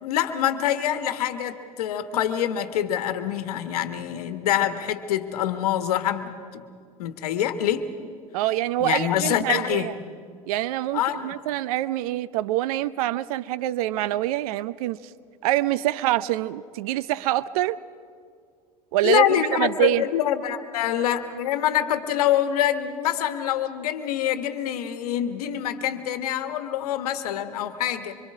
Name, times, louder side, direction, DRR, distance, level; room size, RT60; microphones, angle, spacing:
voice 1, 0.0-6.6 7.0-7.9 8.8-9.9 10.9-11.3 19.0-28.2, left 10 dB, 75° left, 10 dB, 1.3 m, -25 dB
voice 2, 8.3-9.9 10.5-15.0 15.4-17.8 18.9-19.2 19.6-20.0, right 14 dB, 70° right, 18 dB, 0.6 m, -25 dB
26.0 x 24.5 x 4.9 m, 2.2 s
hypercardioid pair, 75°, 19 cm